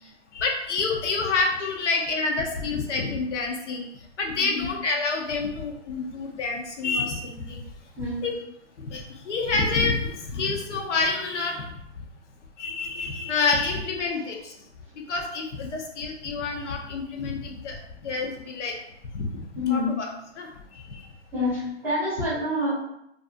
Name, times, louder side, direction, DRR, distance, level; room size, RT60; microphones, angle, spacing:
voice 1, 0.3-3.9 4.2-7.6 8.2-8.3 8.8-11.7 12.6-14.5 15.1-17.8 18.0-18.7 19.1-19.4 19.7-19.8 20.4-20.5 20.9-21.0, left 4 dB, 75° left, 1 dB, 0.7 m, -28 dB
voice 2, 4.4-4.7 8.0-8.3 19.5-20.0 21.3-22.7, left 2 dB, 5° right, -10 dB, 0.8 m, -27 dB
2.5 x 2.4 x 2.5 m, 0.79 s
hypercardioid pair, 155°, 35 cm